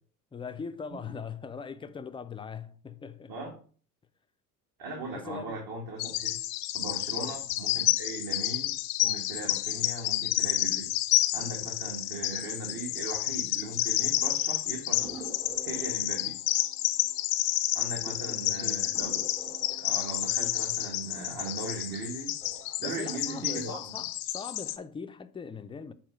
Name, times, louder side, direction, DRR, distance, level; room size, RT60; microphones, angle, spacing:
voice 1, 0.3-3.5 5.1-5.6 7.2-7.4 18.1-18.9 22.8-25.9, left 6 dB, 10° left, 0.4 m, -41 dB
voice 2, 4.8-6.4 6.7-10.9 11.3-15.2 15.6-16.4 17.7-19.2 19.8-22.3 22.8-23.8, right 3 dB, 50° right, 1.8 m, -38 dB
Bird vocalization bird call bird song, 6.0-24.8, left 15 dB, 65° left, 0.7 m, -30 dB
sound 1, 15.0-18.0 18.3-18.4 18.9-21.9 22.3-22.9, right 2 dB, 80° right, 3.2 m, -48 dB
7.2 x 2.9 x 4.9 m
hypercardioid pair, 65°, 47 cm